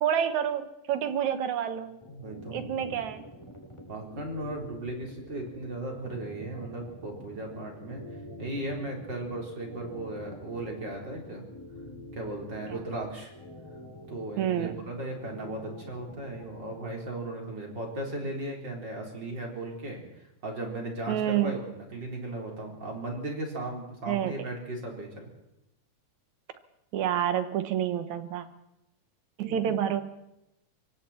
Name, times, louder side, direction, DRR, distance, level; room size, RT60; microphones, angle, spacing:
voice 1, 0.0-2.0 2.5-3.2 12.7-12.8 14.4-14.8 21.1-21.5 24.1-24.5 26.9-28.5 29.4-30.0, right 10 dB, 70° right, 10 dB, 2.6 m, -28 dB
sound 1, 2.0-16.7, equal, 10° left, 3.1 m, -46 dB
voice 2, 2.1-3.0 3.9-8.0 8.4-11.4 12.1-13.3 14.1-25.2 29.5-29.8, right 1 dB, 35° right, 0 dB, 4.6 m, -37 dB
25.5 x 23.5 x 4.4 m, 0.86 s
omnidirectional pair, 3.5 m